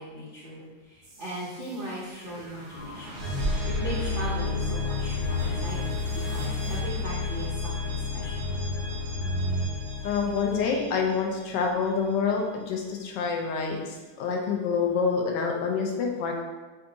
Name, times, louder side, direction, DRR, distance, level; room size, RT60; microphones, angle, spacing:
voice 1, 0.0-3.2 3.8-8.3, right 1 dB, 70° right, -7 dB, 0.5 m, -38 dB
sound 1, 1.0-11.9, left 4 dB, 45° right, 1.1 m, -32 dB
sound 2, 2.7-9.7, equal, 55° left, 0.8 m, -34 dB
sound 3, 3.1-10.7, right 1 dB, 30° left, 1.0 m, -48 dB
voice 2, 10.0-16.4, left 5 dB, 80° left, 1 dB, 1.3 m, -27 dB
3.5 x 2.6 x 3.9 m, 1.3 s
omnidirectional pair, 1.9 m